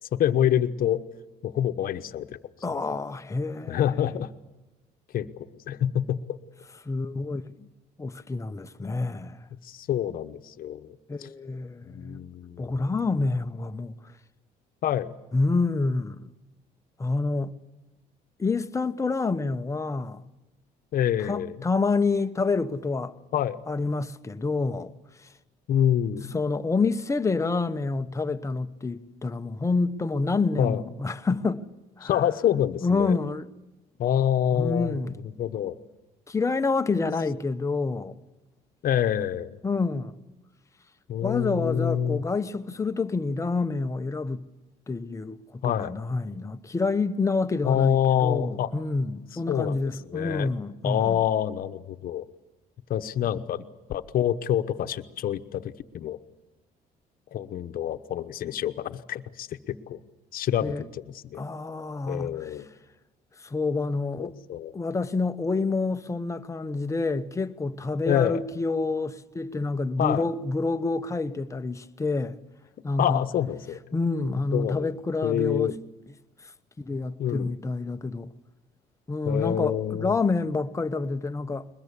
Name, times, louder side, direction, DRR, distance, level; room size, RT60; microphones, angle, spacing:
voice 1, 0.1-1.0 1.4-2.4 3.7-4.3 5.1-6.2 9.6-10.9 11.2-11.3 11.9-12.7 14.8-15.1 20.9-21.6 23.3-23.6 25.7-26.3 30.6-30.8 32.0-33.2 34.0-35.0 35.4-35.8 38.8-39.5 41.1-42.2 45.6-45.9 47.6-48.7 49.5-49.7 50.1-50.5 50.8-52.3 52.9-56.2 57.3-60.0 60.3-61.4 62.1-62.7 64.2-64.7 68.1-68.4 70.0-70.3 73.0-73.8 74.5-74.9 75.2-75.7 77.2-77.5 79.2-80.2, left 10 dB, 60° left, 1.1 m, -26 dB
voice 2, 2.6-4.1 6.8-7.7 8.0-9.5 11.1-12.2 12.6-14.0 15.3-16.3 17.0-17.6 18.4-20.2 21.2-23.1 23.7-24.9 25.2-25.3 26.3-31.6 32.0-32.2 32.8-33.5 34.5-35.2 36.3-38.2 39.6-40.2 41.2-44.5 44.9-51.2 53.3-53.5 60.6-60.8 61.3-62.5 63.4-64.3 64.7-72.4 72.8-73.2 73.9-75.7 76.8-78.3 79.1-81.7, left 3 dB, 15° left, 0.9 m, -28 dB
21.5 x 21.0 x 8.4 m
cardioid pair, 110°, 17 cm